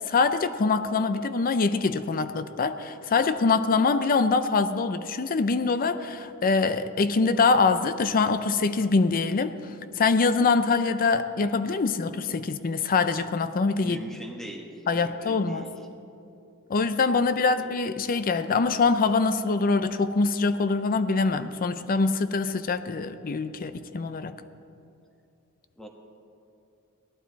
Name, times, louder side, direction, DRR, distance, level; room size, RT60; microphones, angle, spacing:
voice 1, 0.1-9.6 10.0-14.0 14.9-15.7 16.7-24.3, left 4 dB, 40° left, 11 dB, 0.5 m, -24 dB
voice 2, 13.7-15.8 17.2-17.3 17.6-17.7 25.8-25.9, equal, ahead, 1 dB, 1.3 m, -41 dB
17.5 x 12.0 x 4.1 m, 2.6 s
head